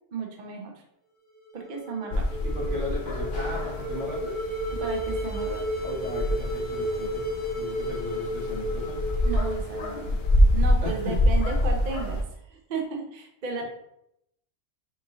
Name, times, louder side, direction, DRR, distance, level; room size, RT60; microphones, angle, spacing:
voice 1, 0.1-0.8 1.5-2.3 4.8-5.6 9.2-10.2 10.5-13.6, right 4 dB, 50° right, 2 dB, 0.7 m, -34 dB
sound 1, 1.4-10.6, equal, 30° right, 1.3 m, -33 dB
sound 2, 2.1-12.2, left 1 dB, 55° left, 0.6 m, -27 dB
voice 2, 2.4-4.4 5.8-7.2 7.5-9.0 10.8-11.2, left 2 dB, 80° right, -5 dB, 1.9 m, -36 dB
5.2 x 2.6 x 2.9 m, 0.79 s
omnidirectional pair, 1.2 m